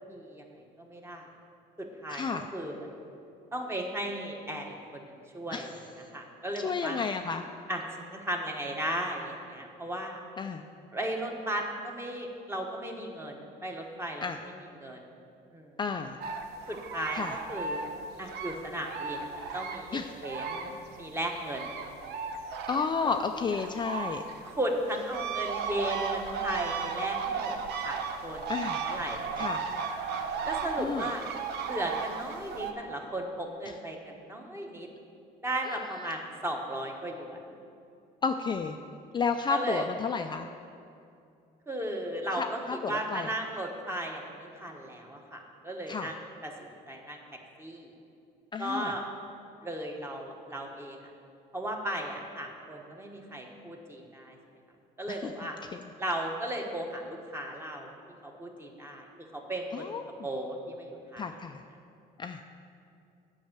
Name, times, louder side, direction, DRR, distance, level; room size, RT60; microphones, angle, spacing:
voice 1, 0.1-0.4 0.8-1.3 1.8-2.8 3.5-5.7 6.1-7.0 7.7-7.8 8.1-10.2 10.9-14.5 14.8-15.0 15.5-15.7 16.7-17.8 18.2-21.7 23.0-23.2 24.4-27.6 27.8-28.4 28.8-29.9 30.4-31.2 31.6-34.9 35.4-37.4 39.5-39.9 41.7-42.4 42.9-46.1 46.4-47.9 48.6-49.1 49.6-51.1 51.5-54.4 55.0-55.6 56.0-57.9 58.2-59.9 60.2-61.2, right 1 dB, 15° right, 1 dB, 1.2 m, -36 dB
voice 2, 2.1-2.5 5.5-5.7 6.6-7.4 10.4-10.6 14.2-14.4 15.8-16.2 17.1-17.4 19.9-20.1 22.7-24.2 28.5-28.8 29.4-29.6 30.8-31.1 33.7-33.8 35.6-36.2 38.2-38.8 39.1-40.5 42.3-43.3 45.9-46.1 48.5-48.9 55.1-55.3 55.7-55.8 59.7-60.0 61.2-61.6 62.2-62.4, left 5 dB, 25° left, 5 dB, 0.4 m, -32 dB
sound 1, 16.2-21.0 21.2-32.7, right 5 dB, 75° right, 0.8 m, -35 dB
8.6 x 5.5 x 7.4 m, 2.5 s
cardioid pair, 110°, 17 cm